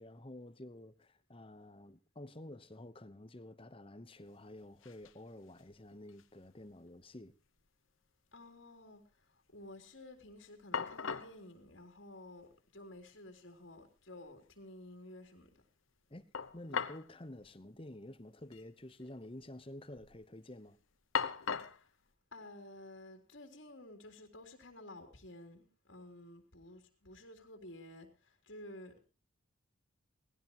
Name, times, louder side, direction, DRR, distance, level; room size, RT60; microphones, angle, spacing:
voice 1, 0.0-7.3 16.1-20.8, left 1 dB, 25° left, 1.0 m, -50 dB
sound 1, 4.3-4.4 4.6-5.2 5.6-6.5 6.7-6.8 10.2-10.3 10.7-11.4 12.5-12.6 13.0-13.1 16.3-17.1 17.4-17.5 18.4-18.6 18.9-19.4 19.9-20.2 21.1-21.8, left 6 dB, 75° left, 1.0 m, -39 dB
voice 2, 8.3-15.5 21.7-21.9 22.3-28.9, left 1 dB, 60° left, 3.7 m, -53 dB
19.5 x 16.0 x 3.0 m
head